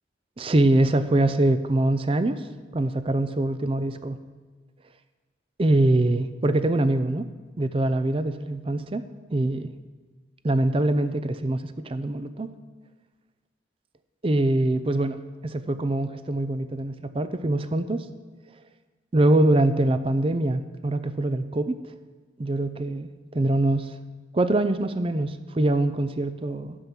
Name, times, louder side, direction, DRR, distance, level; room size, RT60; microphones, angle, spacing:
voice 1, 0.4-2.4 2.7-4.2 5.6-7.3 7.6-9.0 9.3-9.7 10.4-12.5 14.2-18.0 19.1-21.8 22.4-23.9 24.3-26.8, right 1 dB, 30° right, 11 dB, 0.5 m, -23 dB
12.5 x 7.2 x 6.0 m, 1.3 s
head